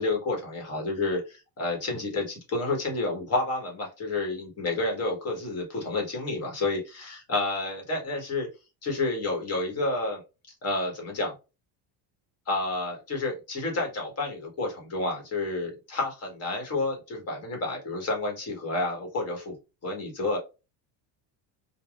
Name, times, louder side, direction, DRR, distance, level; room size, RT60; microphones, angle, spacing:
voice 1, 0.0-8.5 8.8-10.2 10.6-11.3 12.5-19.5 19.8-20.4, left 2 dB, 30° left, 2 dB, 1.1 m, -30 dB
3.3 x 2.2 x 2.3 m, 0.28 s
cardioid pair, 150°, 46 cm